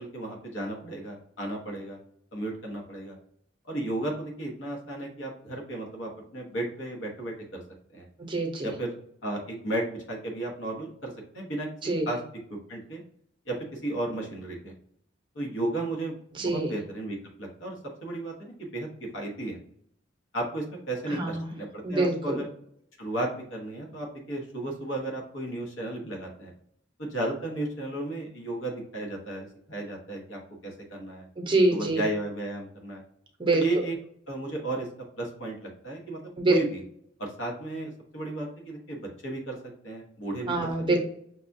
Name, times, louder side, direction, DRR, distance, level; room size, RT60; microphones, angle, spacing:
voice 1, 0.0-2.0 2.3-3.2 3.7-7.6 7.9-8.1 8.6-12.2 12.5-13.0 13.4-14.7 15.3-17.8 18.0-18.3 18.6-19.6 20.3-22.5 23.0-26.5 27.0-31.3 31.7-33.0 33.5-33.9 34.3-34.9 35.2-36.2 36.5-36.8 37.2-39.6 39.8-40.7, right 2 dB, 80° left, 0 dB, 1.1 m, -34 dB
voice 2, 8.2-8.7 11.8-12.1 16.4-16.7 21.1-21.5 21.8-22.4 31.4-32.0 33.4-33.6 36.4-36.6 40.5-41.0, right 2 dB, 25° right, 2 dB, 0.7 m, -25 dB
5.9 x 2.3 x 2.6 m, 0.68 s
head